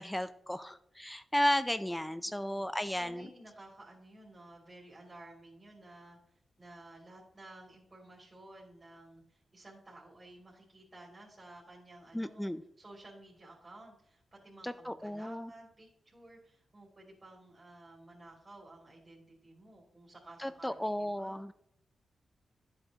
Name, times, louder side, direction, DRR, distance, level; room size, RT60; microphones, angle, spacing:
voice 1, 0.0-3.3 12.1-12.6 14.6-15.5 20.4-21.5, equal, 5° left, 12 dB, 0.4 m, -34 dB
voice 2, 2.2-2.6 3.0-12.5 12.8-21.4, right 2 dB, 25° right, -3 dB, 2.9 m, -54 dB
11.0 x 8.0 x 2.9 m, 0.74 s
cardioid pair, 85°, 0 cm